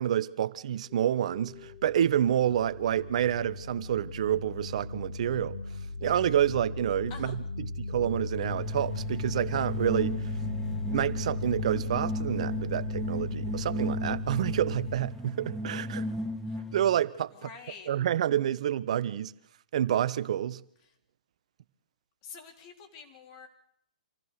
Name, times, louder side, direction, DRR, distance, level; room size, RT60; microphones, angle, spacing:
voice 1, 0.0-5.6 6.0-10.3 10.9-16.0 16.7-17.5 17.9-19.3 19.7-20.6, right 10 dB, 55° right, 1.0 m, -28 dB
sound 1, 0.9-15.0, left 3 dB, 65° left, 5.5 m, -37 dB
sound 2, 8.4-17.0, left 1 dB, 5° left, 1.9 m, -36 dB
voice 2, 17.4-17.9 22.2-23.5, left 5 dB, 40° left, 3.9 m, -47 dB
26.0 x 15.0 x 6.7 m
hypercardioid pair, 125°, 4 cm